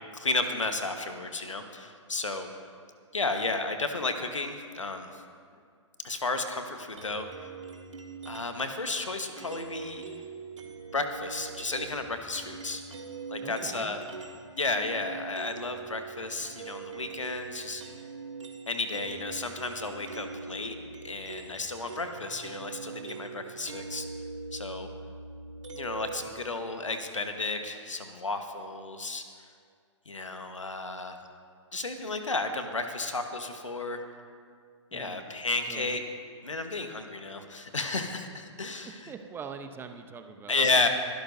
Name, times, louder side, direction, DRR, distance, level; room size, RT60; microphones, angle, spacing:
voice 1, 0.1-2.5 3.1-5.2 6.0-7.3 8.3-10.1 10.9-12.8 13.3-14.0 14.5-17.8 18.7-20.8 21.0-24.1 24.5-24.9 25.7-29.2 30.1-31.2 31.7-34.0 34.9-36.0 36.4-39.1 40.5-40.9, left 3 dB, 85° left, 6 dB, 1.2 m, -32 dB
sound 1, 7.0-8.7 9.4-14.4 14.7-26.2, right 5 dB, 75° right, 1.6 m, -42 dB
voice 2, 13.4-13.9 34.9-35.2 35.7-35.9 39.1-40.8, right 6 dB, 15° right, 7 dB, 0.8 m, -43 dB
23.0 x 12.0 x 2.7 m, 2.1 s
figure-of-eight pair, 120°, 16 cm